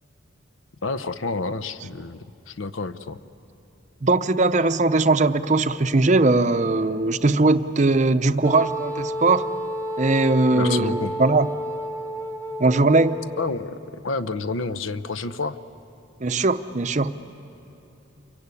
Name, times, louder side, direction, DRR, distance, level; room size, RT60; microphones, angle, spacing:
voice 1, 0.8-3.2 10.5-11.1 13.4-15.6, left 3 dB, 75° left, 13 dB, 0.8 m, -29 dB
voice 2, 4.0-9.4 10.0-11.5 12.6-13.3 16.2-17.1, right 3 dB, 35° right, 10 dB, 0.6 m, -20 dB
Wind instrument woodwind instrument, 8.4-13.6, equal, 15° left, 1.5 m, -31 dB
28.0 x 23.5 x 8.4 m, 2.9 s
head